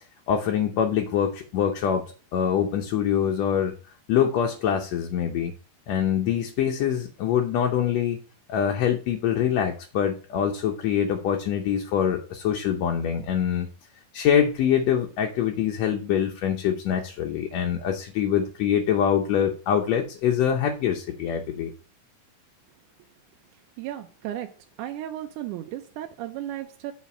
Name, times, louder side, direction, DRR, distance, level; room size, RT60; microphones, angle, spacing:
voice 1, 0.3-3.7 4.1-5.5 5.9-8.2 8.5-13.7 14.1-21.7, left 9 dB, 70° left, 3 dB, 1.7 m, -24 dB
voice 2, 23.8-24.5 24.8-26.9, right 12 dB, 80° right, 5 dB, 2.0 m, -34 dB
7.3 x 4.1 x 5.9 m, 0.37 s
omnidirectional pair, 3.7 m